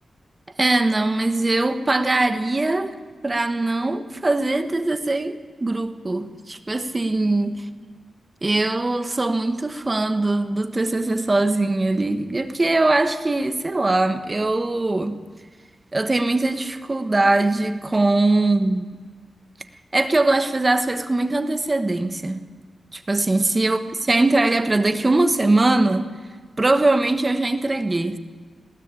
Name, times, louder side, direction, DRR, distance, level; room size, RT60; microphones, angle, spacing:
voice 1, 0.6-3.0 3.2-7.6 8.4-15.2 15.9-18.9 19.9-22.5 22.9-23.8 24.1-26.1 26.6-28.2, right 2 dB, 25° right, 1.2 m, -21 dB
20.5 x 16.5 x 8.3 m
wide cardioid pair, 135°, 0 cm